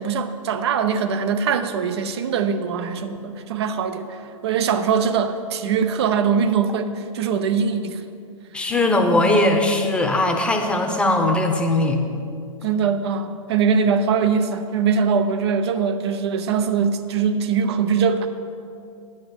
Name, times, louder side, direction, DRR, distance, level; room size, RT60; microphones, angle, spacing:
voice 1, 0.0-8.0 12.6-18.3, right 6 dB, 50° right, 9 dB, 0.7 m, -22 dB
voice 2, 8.5-12.0, left 2 dB, 5° left, 3 dB, 0.8 m, -19 dB
10.0 x 5.2 x 7.0 m, 2.4 s
figure-of-eight pair, 105°, 17 cm